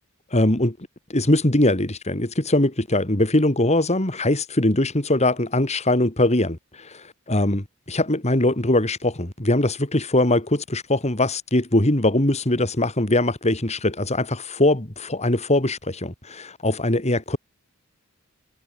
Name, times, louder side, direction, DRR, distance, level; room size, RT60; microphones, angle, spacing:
voice 1, 0.3-0.8 1.1-7.0 7.3-17.4, left 1 dB, 30° left, 2.6 m, -21 dB
head